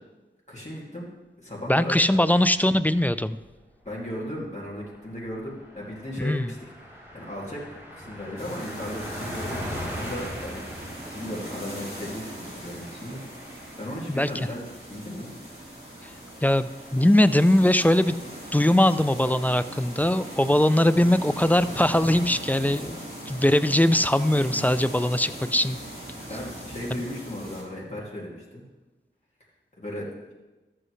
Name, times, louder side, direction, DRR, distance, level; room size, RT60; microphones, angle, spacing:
voice 1, 0.5-1.1 1.4-2.2 2.5-2.6 3.8-6.6 7.1-7.6 7.9-10.6 11.1-13.2 13.8-15.3 24.4-24.7 26.3-28.6 29.8-30.3, left 1 dB, 35° left, -6 dB, 2.4 m, -36 dB
voice 2, 1.7-3.4 6.2-6.5 14.1-14.3 16.0-16.1 16.4-18.2 18.5-23.0 23.3-25.8 26.9-27.0, left 1 dB, 10° left, 13 dB, 0.4 m, -21 dB
Car passing by, 3.4-3.5 3.9-4.0 4.3-18.5, equal, 10° right, 3.4 m, -42 dB
sound 1, 8.4-27.6, equal, 30° right, 3.6 m, -40 dB
13.5 x 7.7 x 3.2 m, 1.2 s
wide cardioid pair, 45°, 20 cm